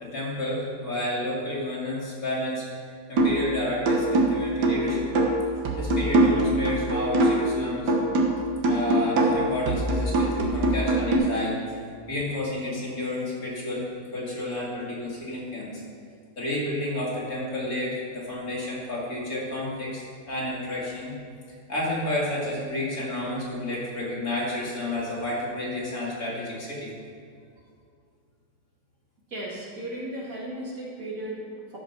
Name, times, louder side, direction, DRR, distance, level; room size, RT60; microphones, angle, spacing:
voice 1, 0.0-2.7 3.1-5.1 5.8-7.9 8.6-11.6 12.1-15.8 16.4-21.2 21.7-26.9, left 1 dB, 60° left, -6 dB, 2.9 m, -31 dB
sound 1, 3.2-3.5 3.9-7.6 7.9-11.2, right 1 dB, 80° right, 1.7 m, -23 dB
voice 2, 29.3-31.8, right 1 dB, 55° right, -5 dB, 2.6 m, -35 dB
12.5 x 5.2 x 5.8 m, 2.3 s
omnidirectional pair, 1.8 m